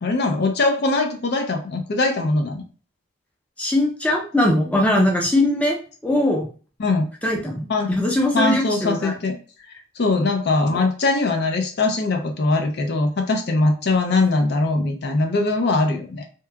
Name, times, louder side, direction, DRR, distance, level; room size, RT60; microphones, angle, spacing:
voice 1, 0.0-2.6 6.8-7.1 7.7-7.9 8.3-9.4 9.7-16.3, left 3 dB, 55° left, 5 dB, 0.5 m, -21 dB
voice 2, 3.6-5.8 6.0-6.5 7.2-9.2, left 1 dB, 5° left, -1 dB, 0.6 m, -20 dB
2.8 x 2.2 x 3.4 m, 0.38 s
head